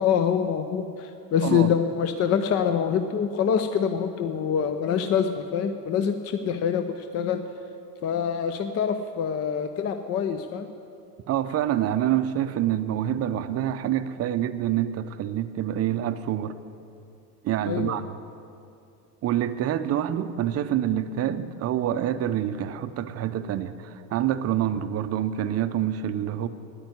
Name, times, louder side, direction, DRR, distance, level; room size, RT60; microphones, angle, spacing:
voice 1, 0.0-7.4 8.0-10.7 17.7-18.0, left 7 dB, 30° left, 8 dB, 0.6 m, -25 dB
voice 2, 11.3-16.6 17.4-18.1 19.2-26.5, right 11 dB, 30° right, 11 dB, 0.6 m, -26 dB
9.6 x 9.1 x 9.5 m, 2.5 s
hypercardioid pair, 95°, 49 cm